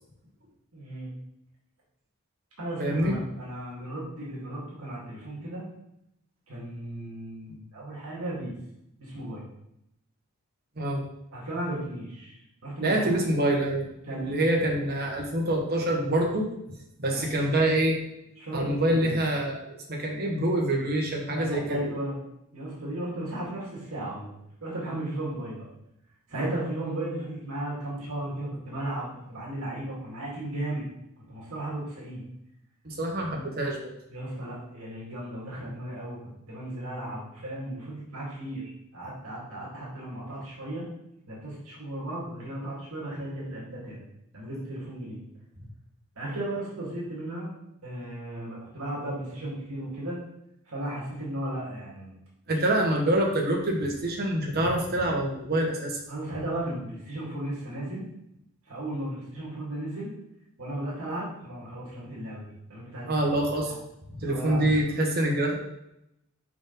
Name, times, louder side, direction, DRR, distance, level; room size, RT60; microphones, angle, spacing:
voice 1, 0.7-1.1 2.6-5.7 6.5-8.5 9.0-9.4 11.3-13.0 14.0-14.4 17.1-17.6 18.4-19.2 21.3-22.2 22.5-24.3 24.6-25.7 26.3-30.9 31.3-32.2 34.1-36.2 36.5-40.9 41.3-44.0 44.3-45.2 46.2-47.5 47.8-50.2 50.7-52.1 52.5-52.6 56.1-58.0 58.7-60.1 60.6-63.1 64.3-64.7, right 1 dB, 75° right, -5 dB, 2.0 m, -35 dB
voice 2, 2.8-3.1 10.8-11.0 12.8-16.5 17.0-18.0 18.5-21.8 32.8-33.8 52.5-56.0 63.1-63.7 64.2-65.5, right 1 dB, 45° right, 0 dB, 1.2 m, -26 dB
5.3 x 5.0 x 3.8 m, 0.81 s
head